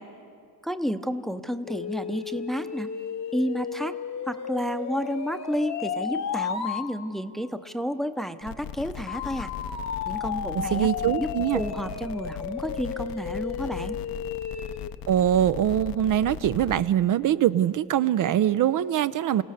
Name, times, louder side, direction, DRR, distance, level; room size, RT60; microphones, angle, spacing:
voice 1, 0.6-2.9 3.3-4.0 4.3-9.5 10.1-10.9 11.2-14.0, equal, ahead, 10 dB, 0.7 m, -31 dB
sound 1, 1.7-6.9 9.1-14.9, left 7 dB, 45° left, 1.0 m, -33 dB
sound 2, 8.4-16.8, left 9 dB, 70° left, 0.7 m, -39 dB
voice 2, 10.7-11.6 15.1-19.4, right 11 dB, 60° right, 14 dB, 0.5 m, -23 dB
29.0 x 17.5 x 6.6 m, 2.4 s
cardioid pair, 125°, 36 cm